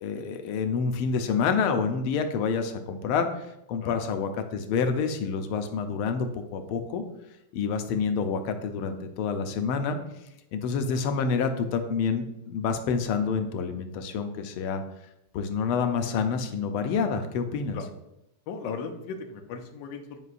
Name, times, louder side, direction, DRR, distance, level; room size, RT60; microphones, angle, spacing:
voice 1, 0.0-7.0 7.5-10.0 10.5-14.8 15.3-17.8, left 5 dB, 90° left, 7 dB, 1.5 m, -28 dB
voice 2, 18.5-20.2, left 5 dB, 70° left, 4 dB, 1.3 m, -36 dB
9.6 x 5.3 x 2.5 m, 0.85 s
omnidirectional pair, 2.3 m